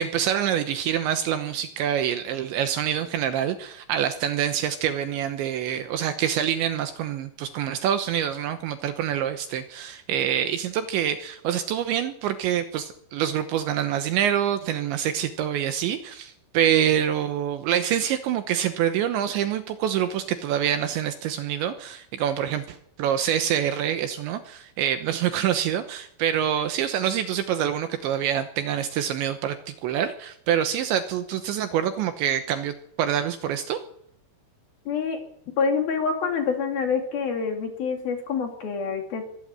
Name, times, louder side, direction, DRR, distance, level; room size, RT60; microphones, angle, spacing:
voice 1, 0.0-33.8, right 10 dB, 75° right, 9 dB, 3.0 m, -26 dB
voice 2, 34.9-35.2 35.6-39.2, left 5 dB, 55° left, 4 dB, 3.9 m, -26 dB
23.0 x 12.5 x 8.9 m, 0.69 s
omnidirectional pair, 6.0 m